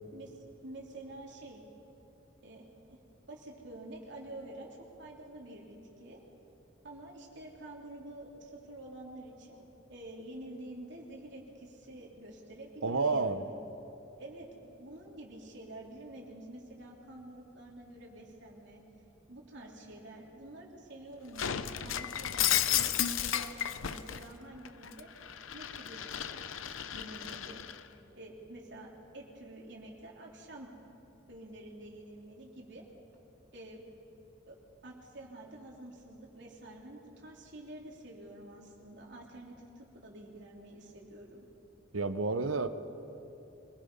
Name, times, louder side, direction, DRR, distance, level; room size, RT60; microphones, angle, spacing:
voice 1, 0.1-1.6 2.4-3.0 3.3-6.2 6.8-13.6 14.2-18.8 19.3-25.1 25.5-26.6 26.9-27.6 28.1-30.7 31.3-32.8 33.5-33.8 34.5-34.6 34.8-41.5, right 1 dB, 60° right, -1 dB, 3.4 m, -48 dB
voice 2, 12.8-13.4 41.9-42.7, right 3 dB, 85° right, 11 dB, 0.9 m, -30 dB
Shatter, 21.4-24.2 24.7-27.8, left 10 dB, 85° left, 0.7 m, -33 dB
25.0 x 19.0 x 5.6 m, 3.0 s
head